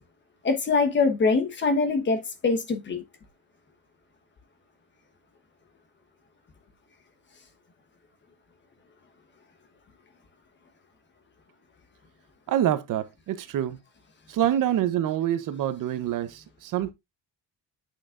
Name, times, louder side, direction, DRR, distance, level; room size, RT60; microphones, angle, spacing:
voice 1, 0.4-3.0, left 4 dB, 30° left, 1.2 m, -23 dB
voice 2, 12.5-13.8 14.3-16.9, right 11 dB, 55° right, 0.9 m, -26 dB
8.5 x 6.2 x 2.5 m
cardioid pair, 165°, 38 cm